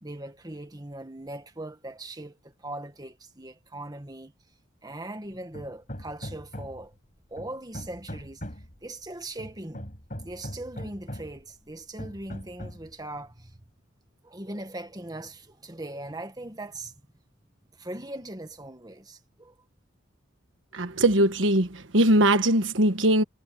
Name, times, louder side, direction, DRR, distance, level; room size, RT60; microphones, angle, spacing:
voice 1, 0.0-4.3 4.8-7.0 7.3-8.4 8.8-9.9 10.2-13.6 14.2-16.9 17.7-19.6, right 1 dB, 20° right, 1.8 m, -40 dB
Hammer, 5.5-6.9 7.4-8.8 9.4-11.4 12.0-12.9, equal, 40° left, 7.0 m, -40 dB
voice 2, 20.7-23.2, right 1 dB, 75° right, 1.5 m, -21 dB
head